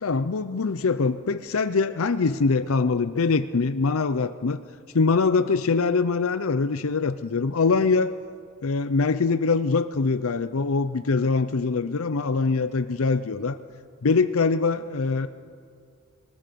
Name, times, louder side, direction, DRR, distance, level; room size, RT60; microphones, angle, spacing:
voice 1, 0.0-4.6 4.9-8.1 8.6-13.6 14.0-15.3, left 4 dB, 80° left, 11 dB, 0.6 m, -23 dB
23.0 x 20.5 x 6.9 m, 2.3 s
head